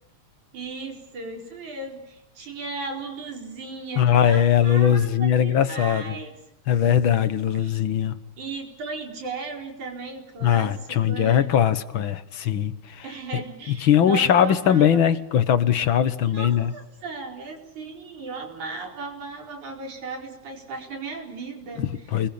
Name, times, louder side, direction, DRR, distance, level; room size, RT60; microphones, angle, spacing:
voice 1, 0.5-6.3 7.6-7.8 8.4-11.5 13.0-15.0 16.2-21.9, right 4 dB, 85° right, 2 dB, 5.9 m, -36 dB
voice 2, 4.0-6.2 6.7-8.2 10.4-13.1 13.3-16.7 21.8-22.3, left 9 dB, 55° left, 13 dB, 1.7 m, -21 dB
29.0 x 21.5 x 8.7 m, 0.75 s
omnidirectional pair, 3.3 m